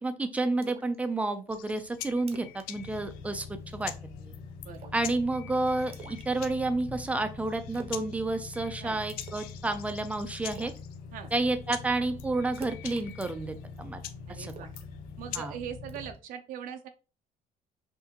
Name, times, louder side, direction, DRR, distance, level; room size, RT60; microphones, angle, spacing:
voice 1, 0.0-3.5 3.7-3.9 4.3-4.4 4.9-10.7 11.3-14.0 14.4-14.5 15.3-15.5, right 2 dB, 10° right, 9 dB, 0.5 m, -30 dB
Splash splatter, 0.6-1.0 1.3-1.4 1.8-1.9 2.2-2.7 2.9-3.1 3.5-3.8 4.7-5.1 5.9-6.8 7.7-8.0 8.3-8.7 9.2-9.6 9.9-10.0 10.5-10.8 12.5-13.8 14.5-15.4 15.9-16.2, right 6 dB, 40° right, 0.8 m, -49 dB
sound 1, 1.5-15.4, left 12 dB, 85° left, 0.4 m, -46 dB
sound 2, 2.7-16.1, left 4 dB, 60° left, 0.9 m, -44 dB
voice 2, 14.3-14.7 15.2-16.9, right 8 dB, 70° right, 7 dB, 0.6 m, -41 dB
5.7 x 2.7 x 2.9 m, 0.34 s
cardioid pair, 150°, 15 cm